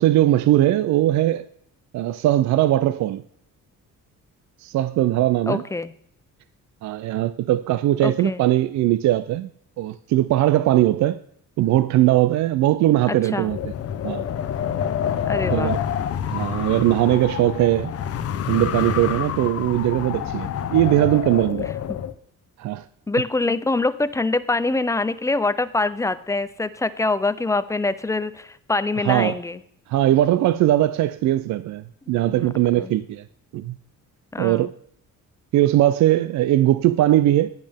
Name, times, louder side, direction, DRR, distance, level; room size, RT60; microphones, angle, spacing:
voice 1, 0.0-1.4 1.9-3.2 4.6-5.6 6.8-9.5 9.8-11.2 11.6-13.7 14.0-14.2 15.5-15.8 16.3-17.9 18.5-21.7 22.6-22.9 29.0-29.4 29.9-33.2 33.5-33.8 34.4-34.7 35.5-37.5, right 14 dB, 65° right, 0.4 m, -20 dB
voice 2, 5.5-5.9 8.0-8.4 13.1-13.5 15.3-15.7 21.9-22.0 23.1-29.6 32.3-32.5 32.8-32.9 34.3-34.7, left 3 dB, 10° left, 0.3 m, -24 dB
Wind, 13.4-22.1, left 9 dB, 50° left, 0.7 m, -27 dB
10.5 x 10.5 x 3.5 m
cardioid pair, 150°, 31 cm